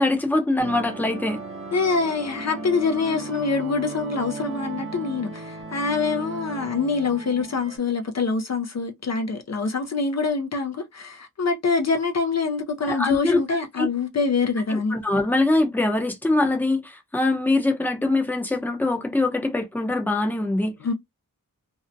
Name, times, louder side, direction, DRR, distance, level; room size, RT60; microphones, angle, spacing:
voice 1, 0.0-1.4 12.8-13.9 14.7-20.7, left 2 dB, 5° left, 0.6 m, -23 dB
sound 1, 0.6-7.8, right 3 dB, 40° right, 0.8 m, -36 dB
voice 2, 1.7-15.0 20.8-20.9, left 4 dB, 50° left, 0.5 m, -25 dB
2.6 x 2.1 x 2.5 m
wide cardioid pair, 80°, 35 cm